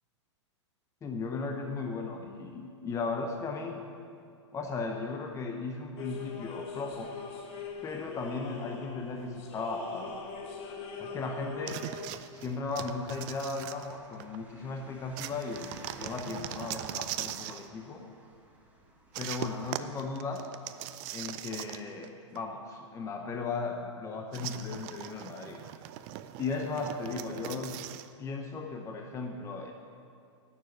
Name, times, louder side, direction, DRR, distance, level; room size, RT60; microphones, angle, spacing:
voice 1, 1.0-3.8 4.5-7.1 7.8-10.2 11.0-11.8 12.3-18.1 19.2-20.5 21.1-25.6 26.4-27.8 28.2-29.7, left 4 dB, 20° left, 3 dB, 0.8 m, -36 dB
sound 1, 6.0-12.1, left 5 dB, 35° left, 1.3 m, -42 dB
sound 2, 11.7-14.4 15.2-17.7 19.1-22.1 22.4-22.5 24.3-28.1, right 13 dB, 40° right, 0.5 m, -40 dB
sound 3, 12.7-19.7, right 1 dB, 10° right, 1.5 m, -56 dB
9.4 x 6.9 x 8.5 m, 2.4 s
hypercardioid pair, 120°, 16 cm